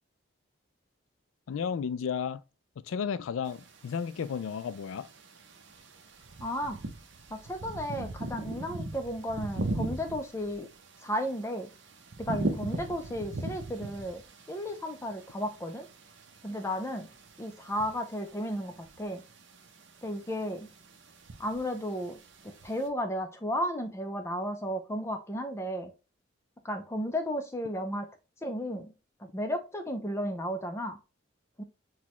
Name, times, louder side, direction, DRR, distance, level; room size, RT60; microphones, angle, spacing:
voice 1, 1.5-2.4 2.9-5.1, left 7 dB, 85° left, 0.3 m, -33 dB
sound 1, 3.5-22.9, right 2 dB, 65° right, 0.7 m, -40 dB
voice 2, 6.4-6.8 7.3-10.7 11.0-11.7 12.2-14.2 14.5-15.9 16.4-17.1 17.4-19.2 20.0-20.7 21.4-22.2 22.6-25.9 26.6-28.1 28.4-28.9 29.2-31.0 31.6-31.7, equal, 15° left, 0.4 m, -34 dB
6.0 x 2.2 x 3.0 m
head